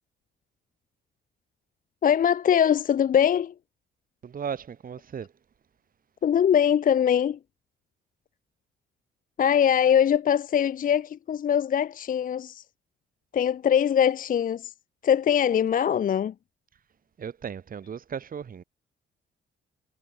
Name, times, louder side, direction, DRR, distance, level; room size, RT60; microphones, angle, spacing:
voice 1, 2.0-3.5 6.2-7.4 9.4-12.6 13.3-14.7 15.0-16.3, left 9 dB, 45° left, 0.6 m, -22 dB
voice 2, 4.2-5.3 17.2-18.6, right 7 dB, 45° right, 1.8 m, -36 dB
cardioid pair, 90°, 20 cm